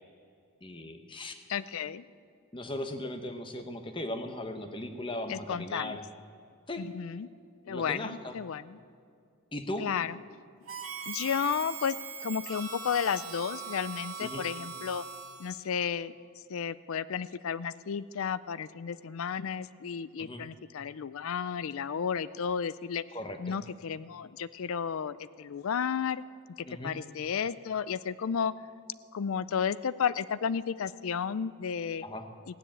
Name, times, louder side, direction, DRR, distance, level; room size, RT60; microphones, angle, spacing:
voice 1, 0.6-1.4 2.5-6.0 6.7-6.8 7.7-8.3 9.5-9.9 14.2-14.5 20.2-20.4 23.1-23.6 26.6-26.9 32.0-32.2, left 1 dB, 20° left, 7 dB, 1.0 m, -38 dB
voice 2, 1.5-2.0 5.3-6.0 6.8-7.3 7.7-8.8 9.8-10.2 11.1-12.0 12.2-15.0 15.4-16.1 16.5-23.0 23.4-26.2 26.8-28.5 29.1-32.1, left 7 dB, 65° left, 17 dB, 0.4 m, -32 dB
Harmonica, 10.7-15.7, right 6 dB, 65° right, 1.9 m, -41 dB
16.0 x 10.0 x 8.7 m, 2.4 s
head